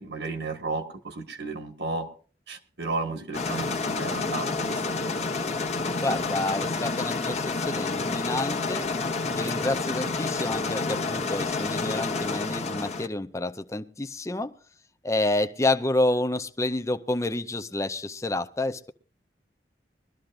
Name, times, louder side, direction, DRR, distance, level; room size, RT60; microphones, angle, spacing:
voice 1, 0.0-2.1 2.5-5.2, right 3 dB, 70° right, 1.7 m, -33 dB
sound 1, 3.3-13.1, left 3 dB, 40° left, 1.0 m, -29 dB
voice 2, 6.0-8.9 9.4-14.5 15.0-18.9, left 2 dB, 15° left, 0.6 m, -29 dB
22.0 x 13.0 x 2.6 m
head